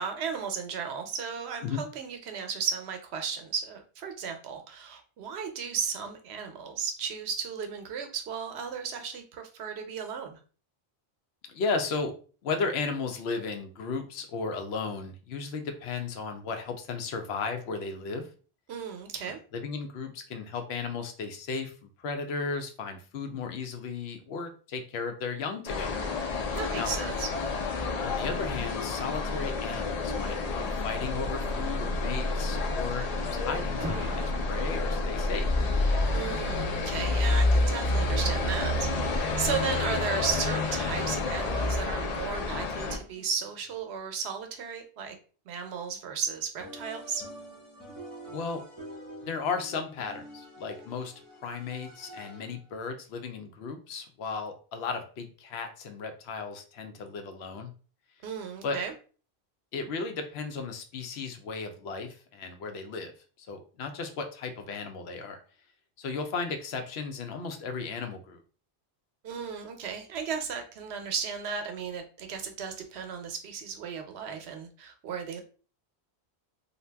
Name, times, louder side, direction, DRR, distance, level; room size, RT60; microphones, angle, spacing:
voice 1, 0.0-10.4 18.7-19.4 26.5-27.3 36.1-45.2 45.5-47.3 58.2-58.9 69.2-75.4, right 6 dB, 80° right, 6 dB, 0.9 m, -35 dB
voice 2, 11.5-12.1 12.4-18.3 19.5-26.0 26.8-26.9 28.0-35.5 48.3-48.6 49.2-51.1 51.4-57.7 58.6-58.8 59.7-63.1 63.4-65.4 66.0-68.4, left 4 dB, 80° left, 6 dB, 0.8 m, -35 dB
sound 1, 25.7-43.0, left 2 dB, 50° left, 0.5 m, -29 dB
Alarm, 33.8-34.7 36.0-43.7, equal, 10° right, 0.3 m, -44 dB
sound 2, 46.6-52.7, equal, 10° left, 1.1 m, -46 dB
2.7 x 2.2 x 3.3 m, 0.39 s
omnidirectional pair, 1.1 m